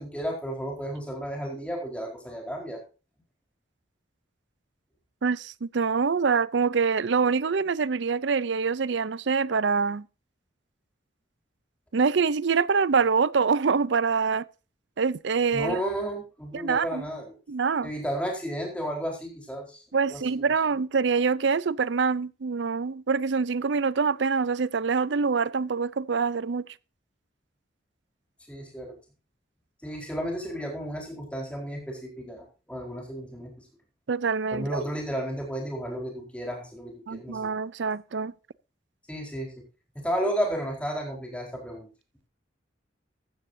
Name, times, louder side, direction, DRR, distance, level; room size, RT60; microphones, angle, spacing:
voice 1, 0.0-2.8 15.5-17.3 17.8-20.5 28.5-28.9 29.8-33.5 34.5-37.4 39.1-39.6 39.9-41.9, equal, 5° left, 4.4 m, -33 dB
voice 2, 5.2-10.1 11.9-14.4 15.0-15.8 16.5-17.1 17.5-17.9 19.9-26.6 34.1-34.8 37.1-38.3, right 5 dB, 75° right, 0.5 m, -25 dB
14.5 x 13.0 x 2.7 m
head